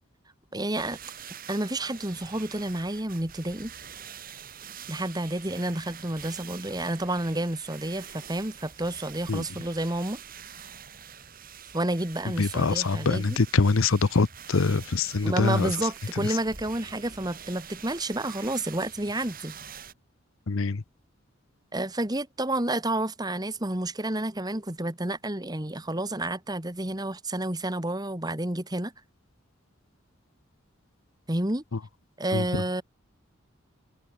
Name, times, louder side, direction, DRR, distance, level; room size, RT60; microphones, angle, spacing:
voice 1, 0.5-1.0 1.5-3.7 4.9-10.2 11.7-13.4 15.2-19.6 21.7-28.9 31.3-31.6 32.2-32.8, right 1 dB, 20° right, 1.9 m, -30 dB
sound 1, 0.8-19.9, right 8 dB, 45° right, 3.2 m, -45 dB
voice 2, 12.4-15.8 16.2-16.4 20.5-20.8 32.3-32.6, left 4 dB, 80° left, 0.7 m, -24 dB
head